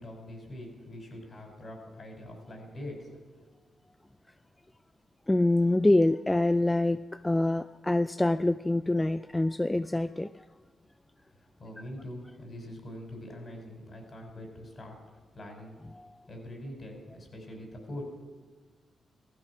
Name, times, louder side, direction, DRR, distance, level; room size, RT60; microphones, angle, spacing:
voice 1, 0.0-3.5 11.3-15.0 15.3-15.8 16.3-18.2, left 1 dB, 50° left, 2 dB, 5.5 m, -43 dB
voice 2, 5.3-10.3 16.0-16.1, left 2 dB, 15° left, 12 dB, 0.4 m, -25 dB
16.0 x 13.5 x 6.1 m, 1.4 s
cardioid pair, 60°, 0 cm